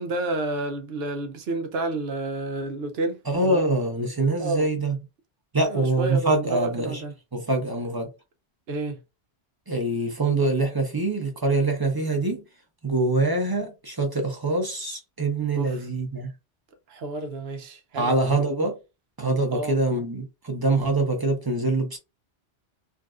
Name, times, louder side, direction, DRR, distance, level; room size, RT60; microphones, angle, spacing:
voice 1, 0.0-3.7 4.4-4.8 5.6-7.1 8.7-9.0 15.5-15.8 16.9-18.3 19.5-19.8, right 2 dB, 65° right, 0.8 m, -30 dB
voice 2, 3.3-5.0 5.5-7.0 7.3-8.1 9.7-12.4 12.8-16.3 17.9-18.8 19.2-22.0, right 2 dB, 25° right, 0.7 m, -24 dB
3.6 x 2.3 x 2.4 m
omnidirectional pair, 1.2 m